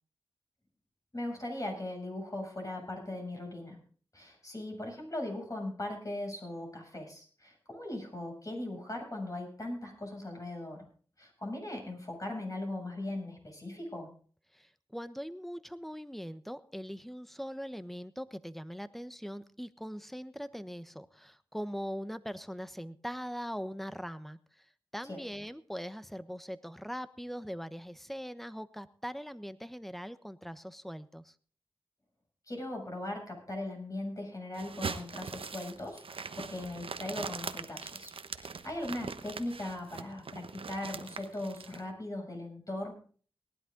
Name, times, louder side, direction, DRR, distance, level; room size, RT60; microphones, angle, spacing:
voice 1, 1.1-3.8 4.1-10.9 11.2-14.1 25.0-25.2 32.5-38.1 38.4-42.9, left 1 dB, 35° left, 1 dB, 7.6 m, -39 dB
voice 2, 14.5-24.7 24.9-31.3, equal, ahead, 13 dB, 1.1 m, -41 dB
sound 1, 34.5-41.8, right 5 dB, 70° right, 1.1 m, -41 dB
18.5 x 11.5 x 3.9 m, 0.43 s
cardioid pair, 45°, 10 cm